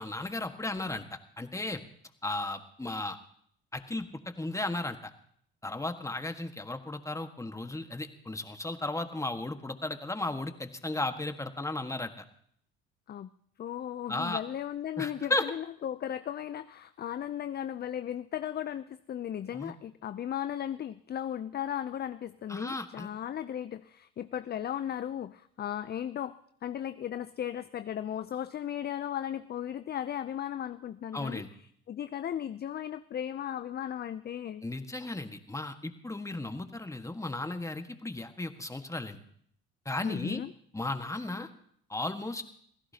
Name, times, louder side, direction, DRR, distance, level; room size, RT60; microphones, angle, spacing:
voice 1, 0.0-1.8 2.2-3.2 3.7-5.1 5.6-12.2 14.1-14.4 15.0-15.5 19.5-19.7 22.5-23.1 31.1-31.5 34.6-39.2 39.8-40.4 40.7-41.5 41.9-42.4, left 2 dB, 10° left, 7 dB, 1.6 m, -35 dB
voice 2, 13.6-31.4 31.9-34.6 40.0-40.5, left 10 dB, 30° left, 12 dB, 0.5 m, -36 dB
26.5 x 16.5 x 2.9 m, 0.64 s
hypercardioid pair, 75°, 30 cm